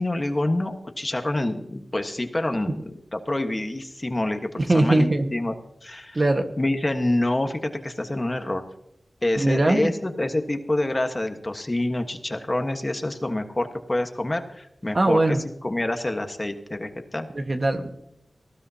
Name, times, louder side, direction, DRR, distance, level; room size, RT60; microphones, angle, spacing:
voice 1, 0.0-5.5 5.8-6.2 6.6-8.6 9.2-15.4 15.6-17.3, left 1 dB, 25° left, 6 dB, 1.3 m, -27 dB
voice 2, 4.6-5.3 6.1-6.5 9.4-9.9 14.9-15.4 17.3-17.9, right 2 dB, 40° right, 5 dB, 1.4 m, -21 dB
19.0 x 15.0 x 2.8 m, 0.78 s
wide cardioid pair, 100°, 0 cm